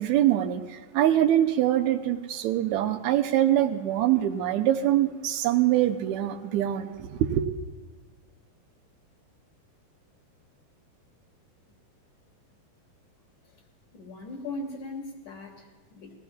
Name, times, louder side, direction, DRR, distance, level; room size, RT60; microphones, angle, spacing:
voice 1, 0.0-7.4, right 12 dB, 85° right, 1.6 m, -24 dB
voice 2, 13.9-16.1, left 2 dB, 65° left, 3.1 m, -39 dB
21.5 x 16.0 x 2.3 m
omnidirectional pair, 4.0 m